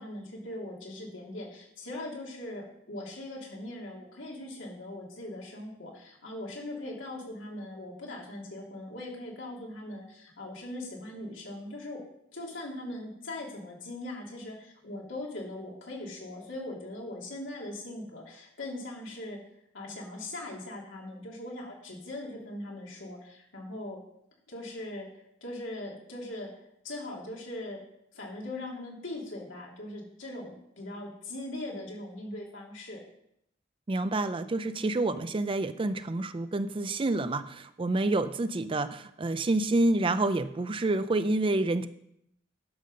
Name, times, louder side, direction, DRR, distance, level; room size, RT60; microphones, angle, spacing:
voice 1, 0.0-12.0 12.3-19.4 19.7-24.0 24.5-25.1 25.4-26.5 26.8-27.8 28.1-33.0, left 1 dB, 80° left, -2 dB, 2.8 m, -40 dB
voice 2, 33.9-41.9, right 2 dB, 25° right, 12 dB, 0.4 m, -28 dB
10.5 x 5.6 x 6.4 m, 0.75 s
head